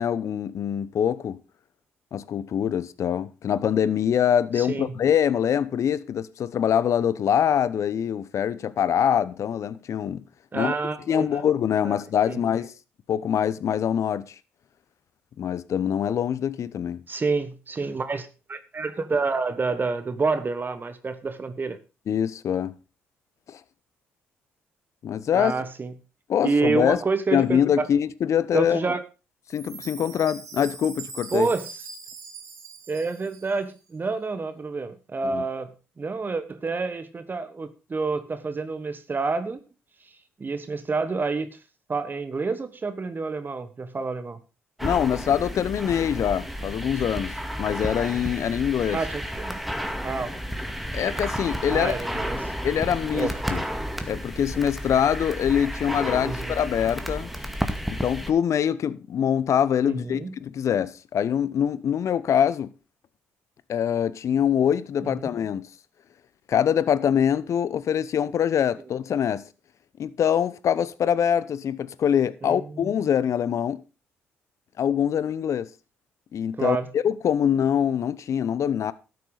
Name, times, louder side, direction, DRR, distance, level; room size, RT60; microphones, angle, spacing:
voice 1, 0.0-1.4 2.1-10.2 10.5-10.7 11.1-12.7 13.1-14.3 15.4-17.0 22.1-22.7 23.5-23.6 25.0-25.5 26.3-27.0 27.3-28.8 29.5-31.5 35.2-35.4 44.8-49.0 50.9-51.9 52.6-53.6 54.1-57.3 57.9-62.7 63.7-65.7 66.5-69.4 70.0-73.8 74.8-75.7 76.3-78.9, left 9 dB, 55° left, 0.8 m, -24 dB
voice 2, 4.5-4.9 10.5-11.4 11.8-12.0 12.3-12.4 17.1-21.8 25.3-25.9 26.4-27.8 28.5-29.0 31.3-31.7 32.9-35.7 36.0-39.6 40.4-41.6 41.9-44.4 48.9-49.6 50.0-50.3 51.7-52.5 53.1-53.3 56.2-56.5 59.8-60.3 65.2-65.3 72.4-72.9 76.6-76.9, right 4 dB, 35° right, 1.3 m, -28 dB
Chime, 29.5-33.7, right 5 dB, 75° right, 3.3 m, -42 dB
sound 1, 44.8-58.3, equal, ahead, 2.0 m, -32 dB
12.5 x 9.4 x 4.0 m
hypercardioid pair, 55°, 6 cm